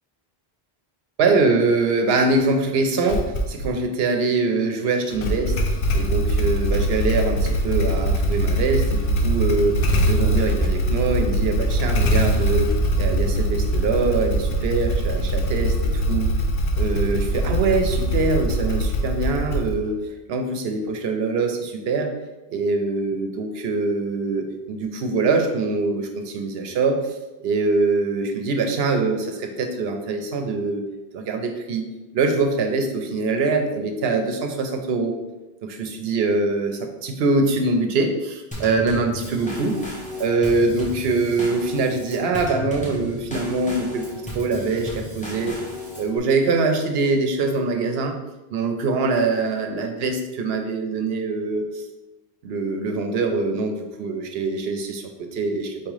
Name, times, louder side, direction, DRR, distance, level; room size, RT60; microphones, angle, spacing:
voice 1, 1.2-5.6 5.9-16.4 16.8-22.1 22.5-30.9 31.1-31.8 32.1-35.1 35.6-39.8 40.2-44.0 44.3-45.6 46.0-48.2 48.5-51.8 52.4-55.8, right 3 dB, 80° right, 5 dB, 0.8 m, -23 dB
Motorcycle / Engine starting, 3.1-3.8 5.1-20.0, right 1 dB, 65° left, 0.8 m, -22 dB
Drum kit / Snare drum / Bass drum, 38.5-46.2, left 1 dB, 10° left, 0.9 m, -34 dB
4.4 x 3.5 x 3.2 m, 1.1 s
omnidirectional pair, 1.1 m